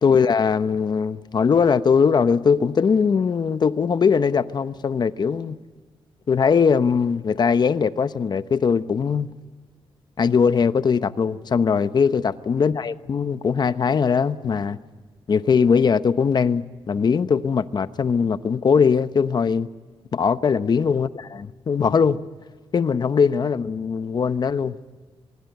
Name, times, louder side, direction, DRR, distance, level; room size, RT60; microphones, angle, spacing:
voice 1, 0.0-5.6 6.3-9.3 10.2-14.8 15.3-19.7 20.1-22.2 22.7-24.8, left 6 dB, 45° left, 0.9 m, -20 dB
25.0 x 22.0 x 9.3 m
wide cardioid pair, 125°, 10 cm